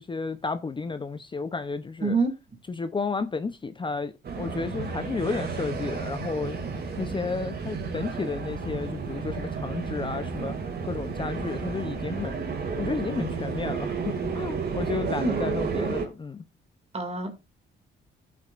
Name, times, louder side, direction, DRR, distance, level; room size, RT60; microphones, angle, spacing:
voice 1, 0.0-2.2 2.7-6.6 7.0-10.5 10.8-12.4 12.8-16.4, left 4 dB, 25° left, 0.6 m, -32 dB
sound 1, 4.2-16.1, right 5 dB, 50° right, 2.4 m, -32 dB
voice 2, 16.9-17.3, right 3 dB, 30° right, 2.3 m, -25 dB
15.0 x 6.1 x 2.4 m
cardioid pair, 90°, 20 cm